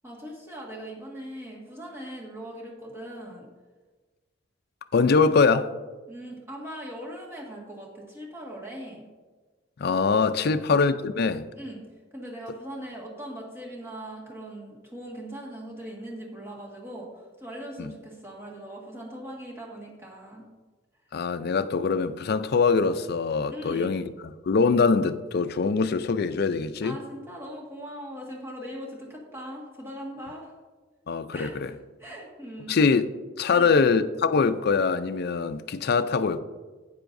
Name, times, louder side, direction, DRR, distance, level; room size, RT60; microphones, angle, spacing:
voice 1, 0.0-3.5 6.1-9.1 10.4-10.7 11.6-11.8 12.1-20.5 23.5-24.0 26.8-30.5 31.3-32.8 33.5-33.8, equal, 15° right, 1.7 m, -40 dB
voice 2, 4.9-5.7 9.8-11.5 17.8-17.9 21.1-27.0 31.1-31.7 32.7-33.0 33.4-36.4, left 4 dB, 55° left, 0.4 m, -23 dB
11.5 x 9.1 x 2.6 m
head